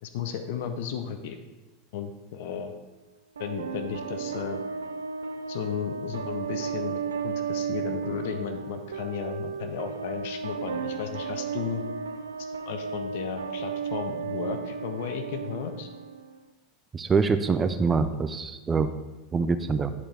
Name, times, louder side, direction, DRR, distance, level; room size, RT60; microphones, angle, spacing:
voice 1, 0.0-1.4 1.9-2.7 3.4-4.6 5.5-11.8 12.7-15.9, left 8 dB, 65° left, 8 dB, 0.6 m, -34 dB
sound 1, 3.4-16.4, right 6 dB, 85° right, 0.4 m, -34 dB
voice 2, 16.9-18.9 19.3-19.9, right 4 dB, 25° right, 10 dB, 0.4 m, -25 dB
10.0 x 4.3 x 3.4 m, 1.1 s
hypercardioid pair, 85°, 0 cm